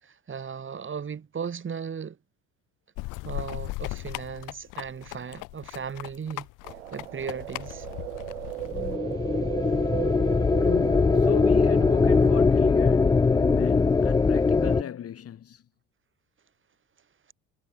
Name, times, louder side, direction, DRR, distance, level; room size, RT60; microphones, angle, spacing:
voice 1, 0.0-2.2 3.2-6.5 6.9-7.9, right 6 dB, 35° right, 3.3 m, -36 dB
sound 1, 3.0-9.0, left 22 dB, 60° left, 0.7 m, -37 dB
sound 2, 6.6-12.3, right 17 dB, 85° right, 0.9 m, -36 dB
sound 3, 8.7-14.8, left 4 dB, 10° left, 0.4 m, -21 dB
voice 2, 10.6-15.6, left 9 dB, 40° left, 1.6 m, -36 dB
hypercardioid pair, 65°, 35 cm